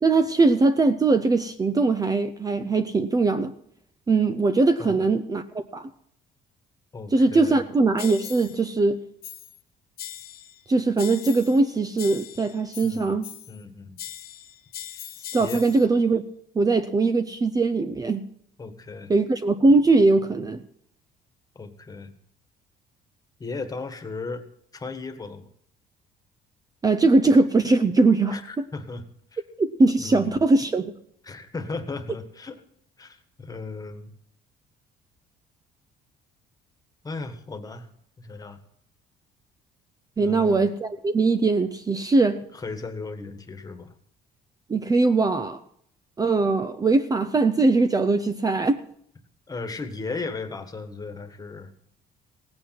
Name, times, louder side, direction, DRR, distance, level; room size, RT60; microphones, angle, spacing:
voice 1, 0.0-3.5 4.1-5.9 7.1-9.0 10.7-13.3 15.3-16.2 16.5-18.2 19.1-20.6 26.8-28.6 29.6-30.9 40.2-42.4 44.7-45.6 46.2-48.8, right 3 dB, 20° right, 10 dB, 0.6 m, -21 dB
voice 2, 6.9-7.6 12.8-13.2 13.5-14.0 14.9-15.1 15.4-15.6 18.6-19.1 21.5-22.1 23.4-24.4 24.7-25.5 28.3-29.0 29.3-29.4 30.0-30.4 31.2-32.6 33.0-34.1 37.0-37.9 38.2-38.6 40.2-40.6 42.5-43.9 49.5-51.7, left 3 dB, 20° left, 8 dB, 1.6 m, -36 dB
sound 1, 8.0-8.6 9.2-9.6 10.0-10.6 11.0-11.6 12.0-13.6 14.0-15.9, left 11 dB, 65° left, 1.0 m, -40 dB
17.0 x 8.8 x 5.9 m, 0.69 s
cardioid pair, 110°, 17 cm